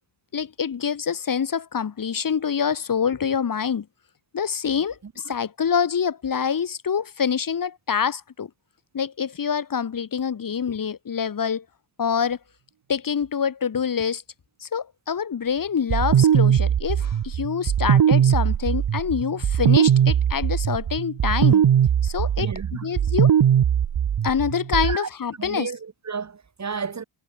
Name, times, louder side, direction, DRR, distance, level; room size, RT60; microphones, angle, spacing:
voice 1, 0.3-3.9 4.3-8.5 8.9-11.6 12.0-12.4 12.9-14.2 14.6-21.6 22.0-22.5 22.8-23.3 24.2-25.7, left 7 dB, 40° left, 3.0 m, -26 dB
voice 2, 5.0-5.4 22.4-22.9 24.8-25.1 25.4-27.0, right 5 dB, 35° right, 4.1 m, -33 dB
sound 1, 15.9-25.0, right 9 dB, 55° right, 2.9 m, -20 dB
wide cardioid pair, 165°, 49 cm